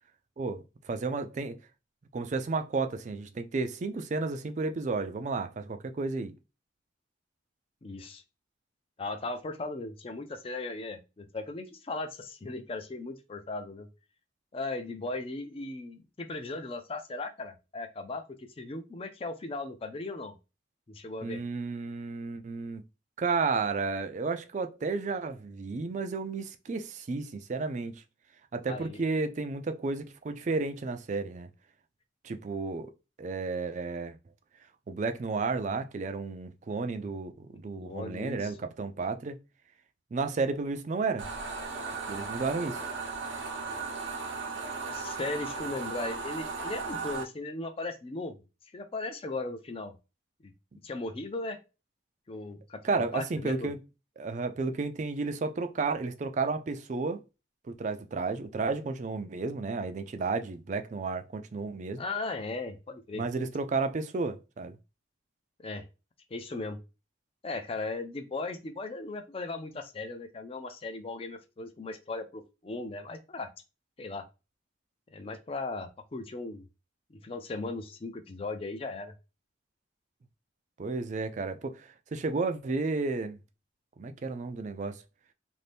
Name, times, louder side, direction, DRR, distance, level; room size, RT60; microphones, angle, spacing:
voice 1, 0.4-1.6 2.1-6.3 21.2-22.8 23.2-28.0 28.5-31.5 32.2-32.9 33.2-34.2 34.9-39.4 40.1-41.3 42.1-42.8 52.8-53.8 54.2-57.2 57.7-62.0 63.2-64.8 80.8-83.4 84.0-85.0, right 4 dB, 40° right, 0.3 m, -32 dB
voice 2, 7.8-8.2 9.0-13.9 14.5-20.4 20.9-21.4 28.7-29.0 37.8-38.5 44.8-48.4 48.7-49.9 50.4-50.5 50.8-51.6 52.3-53.7 62.0-63.2 65.6-65.9 66.3-66.8 67.4-73.5 74.0-74.2 75.1-76.7 77.1-79.1, left 3 dB, 30° left, 0.4 m, -37 dB
sound 1, 41.2-47.2, right 4 dB, 75° right, 0.7 m, -36 dB
2.6 x 2.5 x 3.3 m
head